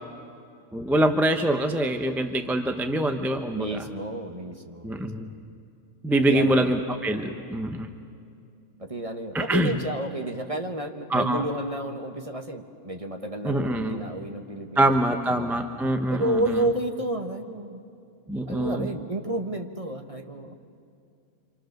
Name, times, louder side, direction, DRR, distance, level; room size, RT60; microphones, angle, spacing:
voice 1, 0.7-3.8 4.8-5.3 6.0-7.9 9.3-9.7 11.1-11.4 13.4-14.0 14.8-16.6 18.3-18.9, right 1 dB, ahead, 6 dB, 0.7 m, -24 dB
voice 2, 3.5-5.3 6.3-6.7 8.8-15.6 16.1-17.8 18.5-20.6, right 1 dB, 25° right, 4 dB, 1.2 m, -31 dB
27.0 x 26.5 x 6.6 m, 2.5 s
omnidirectional pair, 1.6 m